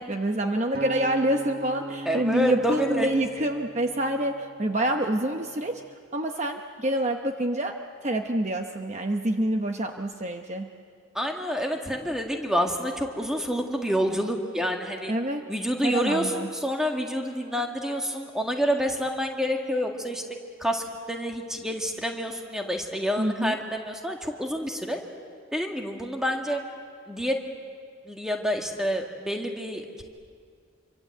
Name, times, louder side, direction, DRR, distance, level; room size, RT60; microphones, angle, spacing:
voice 1, 0.0-5.8 6.1-10.7 15.1-15.4 15.8-16.5 23.2-23.6, right 1 dB, 35° right, 4 dB, 0.9 m, -27 dB
Acoustic guitar, 0.7-5.1 5.7-5.9, right 2 dB, 50° right, 1.4 m, -38 dB
voice 2, 2.1-3.1 11.1-15.1 15.5-20.2 20.6-25.0 25.5-26.6 27.1-27.4 28.1-30.0, equal, 5° right, 2 dB, 1.9 m, -28 dB
26.5 x 24.5 x 7.9 m, 2.1 s
head